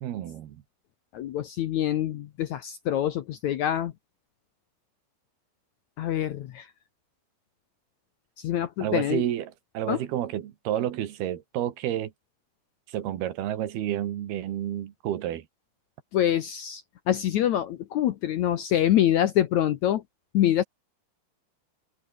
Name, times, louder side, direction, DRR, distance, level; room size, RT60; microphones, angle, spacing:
voice 1, 0.0-0.6 8.8-12.1 12.9-15.5, right 11 dB, 80° right, 3.7 m, -30 dB
voice 2, 1.1-3.9 6.0-6.7 8.4-9.2 9.9-10.0 16.1-20.0 20.3-20.6, left 11 dB, 70° left, 1.8 m, -25 dB
omnidirectional pair, 4.5 m